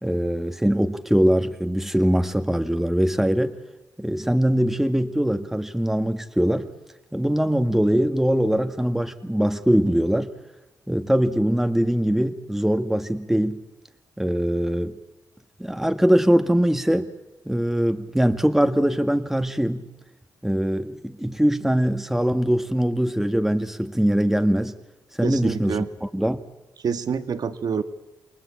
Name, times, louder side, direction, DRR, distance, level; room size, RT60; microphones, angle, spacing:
voice 1, 0.0-3.6 4.0-6.7 7.1-10.3 10.9-13.6 14.2-14.9 15.6-17.1 17.5-19.9 20.4-24.8 25.2-25.9 26.1-26.4, equal, 5° right, 8 dB, 1.8 m, -22 dB
voice 2, 25.2-25.9 26.8-27.8, right 6 dB, 65° right, 10 dB, 1.9 m, -27 dB
28.5 x 22.0 x 8.7 m, 1.0 s
cardioid pair, 75°, 7 cm